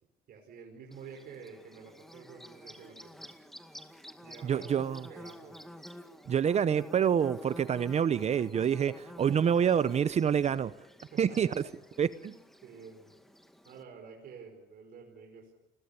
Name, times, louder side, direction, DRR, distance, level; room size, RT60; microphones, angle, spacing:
voice 1, 0.3-3.3 3.8-3.9 4.2-4.7 5.1-5.6 11.1-11.6 12.6-13.2 13.6-15.5, right 5 dB, 60° right, 2 dB, 5.1 m, -49 dB
Bird / Buzz, 0.9-13.8, equal, ahead, 2.2 m, -50 dB
voice 2, 4.4-5.0 6.3-10.7 11.2-11.5 12.0-12.3, right 8 dB, 40° right, 15 dB, 0.8 m, -27 dB
29.0 x 22.0 x 7.0 m, 0.97 s
cardioid pair, 110°, 17 cm